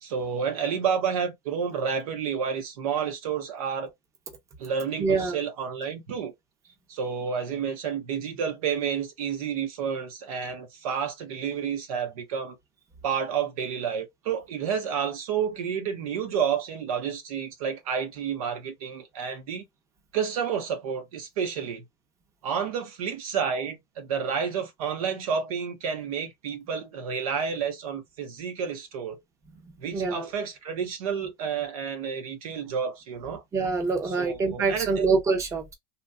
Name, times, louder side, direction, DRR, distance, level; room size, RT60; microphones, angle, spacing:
voice 1, 0.0-3.9 4.6-6.3 6.9-12.6 13.0-19.6 20.1-21.8 22.4-29.2 29.8-33.4 34.2-35.1, right 7 dB, 90° right, 1.0 m, -30 dB
voice 2, 5.0-5.4 29.9-30.3 33.5-35.7, right 4 dB, 15° right, 0.7 m, -25 dB
2.9 x 2.4 x 2.3 m
supercardioid pair, 150°, 18 cm